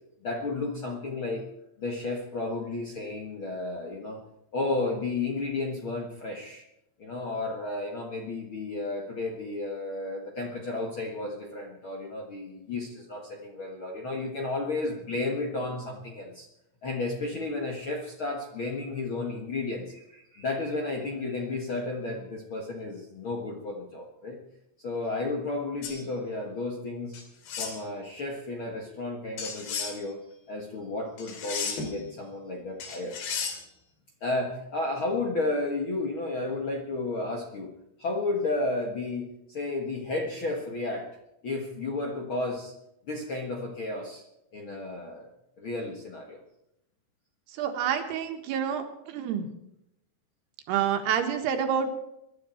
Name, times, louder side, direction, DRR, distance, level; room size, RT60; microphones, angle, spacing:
voice 1, 0.2-1.5 1.8-4.2 4.5-6.6 7.0-16.5 16.8-24.4 24.8-27.2 27.6-33.1 34.2-37.7 38.0-41.1 41.4-42.7 43.1-44.2 44.5-45.3 45.6-46.4, left 2 dB, 55° left, 0 dB, 1.5 m, -32 dB
sound 1, 25.8-26.0 27.1-27.8 29.4-30.0 31.2-32.0 32.8-33.6, left 6 dB, 80° left, 4.3 m, -34 dB
voice 2, 47.5-49.5 50.7-51.9, right 8 dB, 85° right, 5 dB, 3.6 m, -28 dB
23.0 x 12.0 x 4.4 m, 0.84 s
omnidirectional pair, 4.6 m